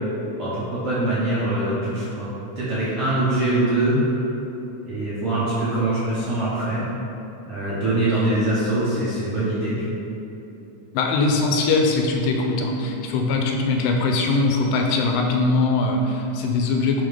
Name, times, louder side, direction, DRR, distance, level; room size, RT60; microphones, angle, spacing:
voice 1, 0.4-2.3 2.6-4.0 4.9-6.8 7.5-9.7, right 2 dB, 60° right, -10 dB, 1.6 m, -23 dB
voice 2, 10.9-17.0, left 3 dB, 90° left, 1 dB, 2.4 m, -21 dB
6.5 x 3.7 x 5.1 m, 3.0 s
omnidirectional pair, 3.9 m